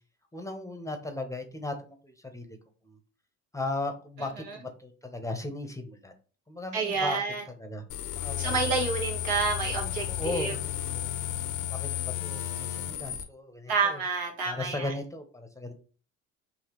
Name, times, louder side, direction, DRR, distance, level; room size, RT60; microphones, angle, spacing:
voice 1, 0.3-2.6 2.8-3.0 3.5-6.1 6.5-7.2 7.5-8.9 10.1-11.1 11.7-14.0 14.5-15.7, left 2 dB, 10° left, 5 dB, 0.8 m, -37 dB
voice 2, 6.7-7.4 8.4-10.5 13.7-14.9, right 5 dB, 70° right, 0 dB, 1.5 m, -29 dB
sound 1, 7.9-13.2, left 12 dB, 60° left, 0.7 m, -33 dB
4.7 x 2.8 x 3.0 m, 0.39 s
hypercardioid pair, 65°, 35 cm